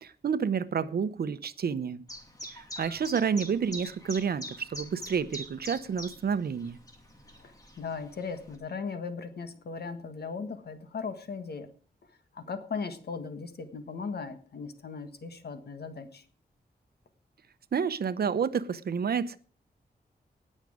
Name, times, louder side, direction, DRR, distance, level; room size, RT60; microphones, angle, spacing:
voice 1, 0.0-2.0 2.5-6.8 17.7-19.4, right 6 dB, 70° right, 0.8 m, -29 dB
Chirp tweet, 2.1-8.6, equal, 20° left, 2.7 m, -44 dB
voice 2, 7.4-11.7 12.3-16.2, left 5 dB, 75° left, 1.6 m, -38 dB
19.0 x 6.5 x 4.9 m
wide cardioid pair, 145°, 17 cm